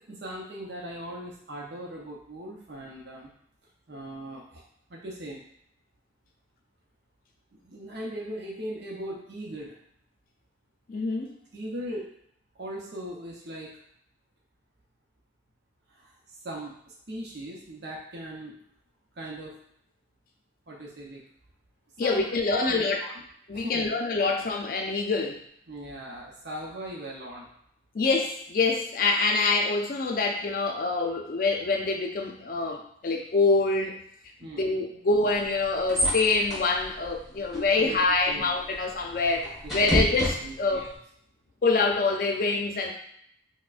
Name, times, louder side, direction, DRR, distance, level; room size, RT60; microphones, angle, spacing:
voice 1, 0.1-3.3 3.9-4.6 4.9-5.4 7.6-9.7 11.5-12.1 12.6-13.8 15.9-16.1 16.4-16.8 17.1-18.6 19.2-19.6 20.7-21.2 22.0-23.1 23.5-23.9 25.7-27.5 34.4-34.7 37.8-38.5 39.6-40.0 40.4-40.9, right 1 dB, 70° right, -3 dB, 0.7 m, -39 dB
voice 2, 10.9-11.4 22.0-23.0 23.5-25.4 27.9-34.0 34.4-39.5 39.7-40.9 41.6-42.9, left 3 dB, 50° left, 2 dB, 0.4 m, -25 dB
sound 1, 35.2-41.0, equal, ahead, 1.3 m, -32 dB
4.5 x 2.1 x 2.4 m, 0.69 s
head